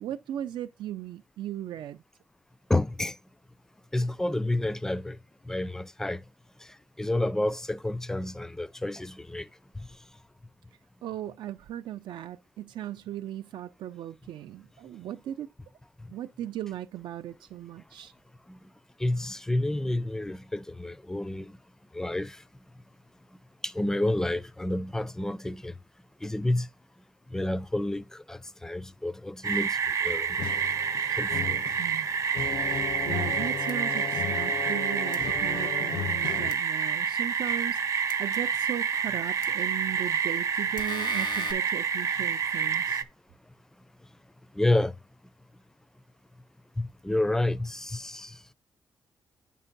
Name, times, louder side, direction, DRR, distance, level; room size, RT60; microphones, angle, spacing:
voice 1, 0.0-2.0 11.0-15.5 16.1-18.1 31.8-32.1 33.0-43.0, right 12 dB, 85° right, 0.4 m, -37 dB
voice 2, 2.7-3.1 3.9-5.2 5.5-6.2 7.0-9.5 19.0-21.5 21.9-22.4 23.6-25.7 26.2-26.7 27.3-29.7 30.0-30.3 31.2-31.6 44.6-44.9 46.8-48.3, left 1 dB, 5° left, 0.4 m, -29 dB
sound 1, 29.4-43.0, right 7 dB, 45° right, 0.6 m, -28 dB
sound 2, 30.4-36.5, left 10 dB, 70° left, 0.4 m, -36 dB
sound 3, 33.7-33.8 35.1-35.2 36.5-36.6 38.1-38.2 39.4-39.5 40.8-41.5, left 8 dB, 90° left, 1.6 m, -39 dB
8.9 x 5.4 x 3.9 m
wide cardioid pair, 155°, 8 cm